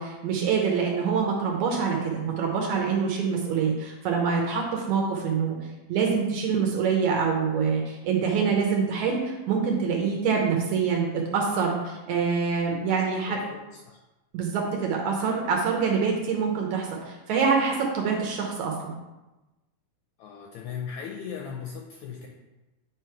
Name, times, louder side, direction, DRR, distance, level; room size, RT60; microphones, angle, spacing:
voice 1, 0.0-5.6 5.9-13.4 14.3-18.9, right 5 dB, 70° right, 0 dB, 1.9 m, -25 dB
voice 2, 13.3-14.0 20.2-22.3, left 7 dB, 80° left, 0 dB, 1.7 m, -38 dB
9.0 x 3.1 x 4.6 m, 1.1 s
omnidirectional pair, 3.9 m